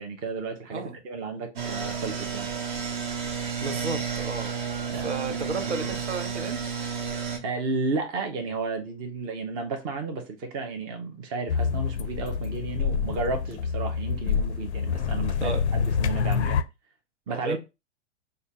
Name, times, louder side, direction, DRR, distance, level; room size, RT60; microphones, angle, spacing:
voice 1, 0.0-2.5 4.9-5.3 5.6-6.0 7.1-16.6 17.3-17.6, right 4 dB, 15° right, 0.4 m, -33 dB
sound 1, 1.6-7.4, right 6 dB, 45° right, 0.8 m, -31 dB
voice 2, 3.6-6.6 15.4-15.6 17.3-17.6, right 3 dB, 75° right, 0.9 m, -33 dB
sound 2, 11.5-16.6, left 6 dB, 65° left, 0.5 m, -27 dB
4.2 x 2.2 x 3.7 m
figure-of-eight pair, 105°, 36 cm